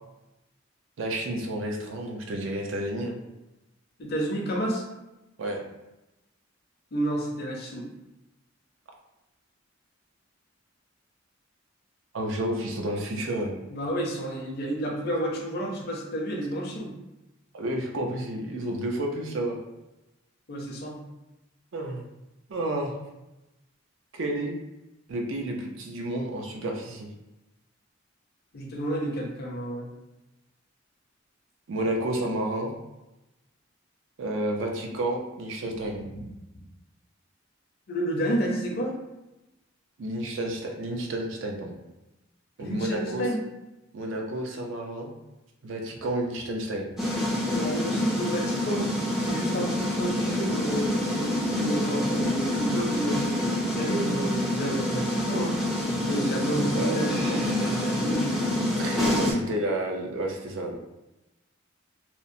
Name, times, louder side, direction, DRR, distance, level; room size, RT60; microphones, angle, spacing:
voice 1, 1.0-3.2 5.4-5.6 12.1-13.5 17.5-19.6 21.7-22.0 22.5-23.0 24.1-24.6 25.1-27.1 31.7-32.7 34.2-36.0 40.0-41.8 42.6-43.3 43.9-45.1 45.6-46.9 56.7-57.0 58.8-60.8, right 1 dB, 70° right, 1 dB, 0.5 m, -30 dB
voice 2, 4.0-4.8 6.9-7.9 13.7-16.9 20.5-21.0 28.5-29.9 36.0-36.3 37.9-38.9 42.6-43.4 47.5-48.9 49.2-55.6 55.9-58.5, right 1 dB, 50° left, 0 dB, 0.5 m, -30 dB
sound 1, 47.0-59.3, left 1 dB, ahead, 0.4 m, -27 dB
2.8 x 2.0 x 2.5 m, 0.98 s
head